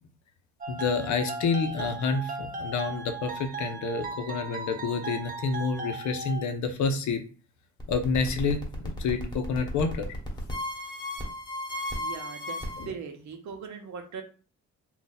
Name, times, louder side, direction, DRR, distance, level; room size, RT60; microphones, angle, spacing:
sound 1, 0.6-6.4, right 4 dB, 30° right, 0.5 m, -37 dB
voice 1, 0.7-7.2 7.9-8.6 9.0-10.1 12.8-12.9, left 4 dB, 70° left, 7 dB, 0.6 m, -28 dB
sound 2, 7.8-12.9, left 1 dB, 15° left, 1.1 m, -35 dB
voice 2, 11.9-12.6 12.8-14.2, right 6 dB, 65° right, 4 dB, 0.8 m, -39 dB
2.6 x 2.3 x 3.9 m, 0.38 s
cardioid pair, 90°, 30 cm